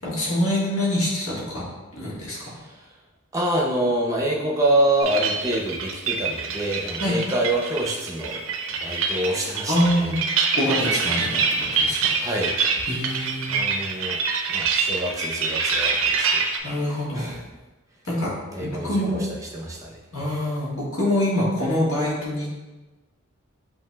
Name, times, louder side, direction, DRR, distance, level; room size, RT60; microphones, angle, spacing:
voice 1, 0.0-1.6 1.9-2.6 7.0-7.2 9.7-10.2 10.5-11.4 11.7-12.2 12.9-13.5 16.6-17.3 18.1-18.3 18.6-19.2 20.1-22.5, left 1 dB, 75° left, -6 dB, 1.4 m, -25 dB
voice 2, 2.5-2.9 3.3-8.4 8.8-10.1 12.1-12.8 13.5-14.2 14.5-17.4 18.5-20.3, right 1 dB, 15° right, -2 dB, 0.6 m, -27 dB
sound 1, 5.0-16.6, right 5 dB, 65° right, 0.5 m, -25 dB
7.6 x 2.7 x 2.2 m, 1.2 s
head